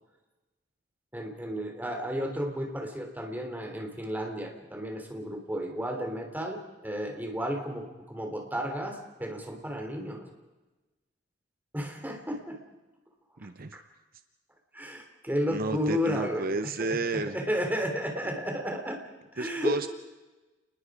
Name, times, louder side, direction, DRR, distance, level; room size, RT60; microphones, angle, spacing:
voice 1, 1.1-10.2 11.7-12.6 13.7-13.8 14.7-16.6 16.9-19.0 19.3-19.9, equal, 10° right, 3 dB, 3.3 m, -33 dB
voice 2, 13.4-13.8 15.5-17.4 19.4-19.9, right 3 dB, 50° right, 10 dB, 0.7 m, -31 dB
29.0 x 20.5 x 5.0 m, 1.1 s
head